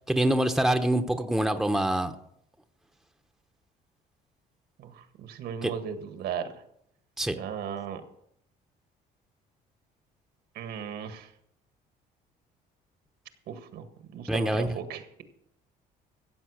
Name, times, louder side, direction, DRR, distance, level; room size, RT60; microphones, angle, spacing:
voice 1, 0.1-2.1 5.6-5.7 7.2-7.4 14.3-14.7, right 1 dB, ahead, 8 dB, 0.9 m, -25 dB
voice 2, 4.8-6.5 7.3-8.0 10.5-11.3 13.5-15.2, right 8 dB, 75° right, 9 dB, 1.7 m, -36 dB
15.0 x 7.7 x 6.4 m, 0.73 s
cardioid pair, 110°, 17 cm